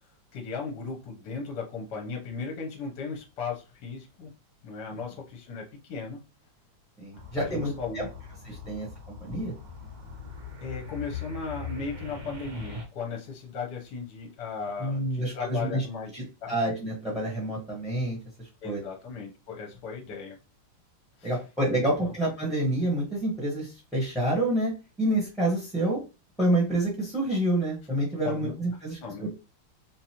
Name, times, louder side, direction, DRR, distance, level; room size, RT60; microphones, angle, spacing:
voice 1, 0.3-4.3 4.6-6.2 7.3-8.0 10.6-16.1 16.4-16.5 18.6-20.4 21.2-21.3 21.7-22.1 28.2-28.5 29.0-29.3, left 5 dB, 60° left, 0 dB, 1.4 m, -36 dB
voice 2, 7.0-8.1 8.4-9.5 14.8-15.8 16.1-16.2 16.5-18.2 18.6-18.8 21.2-24.7 25.0-26.0 26.4-29.3, right 1 dB, ahead, -4 dB, 1.0 m, -28 dB
sound 1, 7.1-12.8, left 5 dB, 70° right, 1.8 m, -40 dB
4.0 x 2.6 x 2.9 m, 0.30 s
omnidirectional pair, 2.2 m